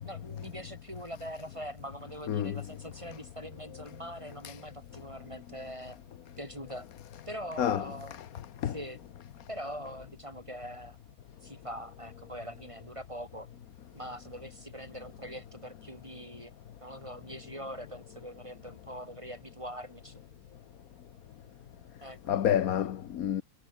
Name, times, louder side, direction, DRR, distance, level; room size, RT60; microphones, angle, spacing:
voice 1, 0.0-6.0 6.4-6.9 7.3-8.2 8.7-9.0 9.5-11.0 11.4-13.5 13.9-16.5 16.8-20.2 22.0-22.2, equal, 20° right, 7.3 m, -43 dB
voice 2, 2.3-2.7 4.4-4.6 7.6-8.3 8.6-8.8 22.3-23.4, left 10 dB, 70° left, 1.4 m, -29 dB
omnidirectional pair, 1.6 m